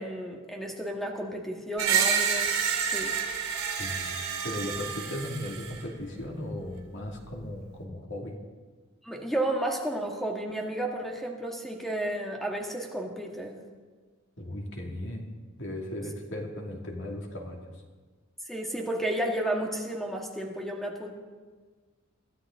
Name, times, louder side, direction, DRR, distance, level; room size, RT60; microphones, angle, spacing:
voice 1, 0.0-2.5 2.8-3.1 9.0-13.6 18.5-21.1, right 1 dB, ahead, 1 dB, 1.8 m, -32 dB
Screech, 1.8-5.8, right 7 dB, 85° right, 3.0 m, -28 dB
voice 2, 3.8-4.1 4.4-8.4 14.4-15.3 15.6-17.7, left 1 dB, 60° left, 0 dB, 2.4 m, -37 dB
22.0 x 13.5 x 3.8 m, 1.4 s
head